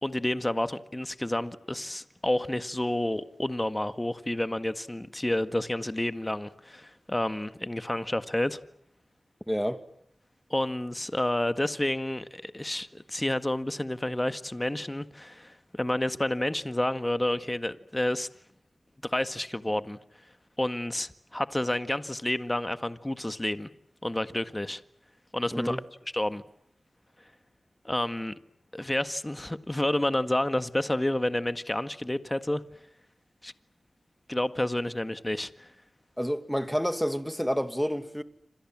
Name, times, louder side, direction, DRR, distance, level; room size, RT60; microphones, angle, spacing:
voice 1, 0.0-8.6 10.5-18.3 19.0-20.0 20.6-23.7 24.0-24.8 25.3-25.8 26.1-26.4 27.9-28.4 28.7-32.6 33.4-33.5 34.3-35.7, left 1 dB, 20° left, 1.7 m, -30 dB
voice 2, 9.5-9.8 25.5-25.8 36.2-38.2, equal, ahead, 2.3 m, -29 dB
28.0 x 27.0 x 7.6 m
cardioid pair, 45°, 0 cm